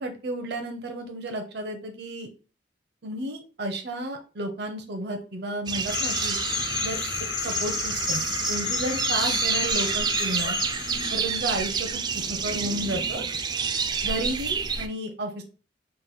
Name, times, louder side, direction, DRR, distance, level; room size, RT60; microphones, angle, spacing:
voice 1, 0.0-2.3 3.0-6.4 6.8-7.0 7.4-8.2 8.5-10.6 11.1-12.0 12.3-13.2 14.0-15.4, right 1 dB, 60° right, 4 dB, 0.6 m, -32 dB
sound 1, 5.7-14.9, right 5 dB, 25° right, 0.3 m, -28 dB
sound 2, 5.9-11.4, left 8 dB, 65° left, 0.5 m, -31 dB
3.8 x 2.2 x 4.1 m, 0.37 s
head